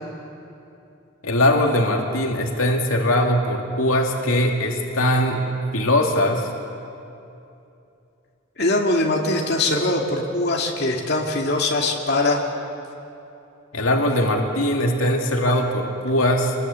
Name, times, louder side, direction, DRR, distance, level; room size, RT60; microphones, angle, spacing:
voice 1, 1.2-5.4 5.7-6.5 13.7-16.5, left 1 dB, 85° left, 1 dB, 2.3 m, -21 dB
voice 2, 8.6-12.4, left 2 dB, 50° left, -1 dB, 2.5 m, -22 dB
26.0 x 20.5 x 8.3 m, 2.7 s
head